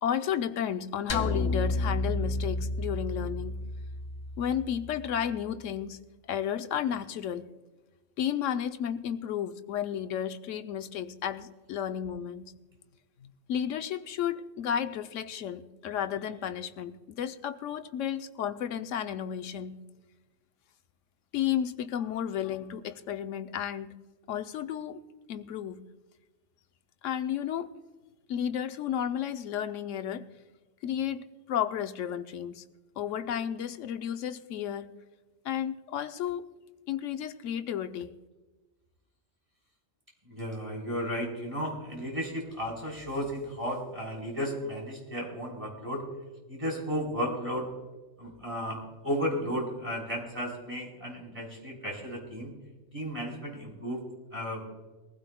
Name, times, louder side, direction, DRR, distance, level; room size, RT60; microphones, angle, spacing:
voice 1, 0.0-3.6 4.4-6.0 6.2-7.5 8.2-12.5 13.2-19.8 21.3-24.0 24.3-25.0 25.3-25.8 27.0-27.7 28.3-30.3 30.8-32.7 33.0-34.9 35.4-36.4 36.9-38.2, left 9 dB, 85° left, 9 dB, 1.0 m, -32 dB
sound 1, 1.1-5.5, left 2 dB, 40° left, 0.4 m, -32 dB
voice 2, 40.3-46.0 46.5-47.7 48.2-52.5 52.9-54.0 54.3-54.7, equal, 25° right, -2 dB, 4.0 m, -34 dB
22.5 x 15.5 x 2.2 m, 1.2 s
omnidirectional pair, 1.3 m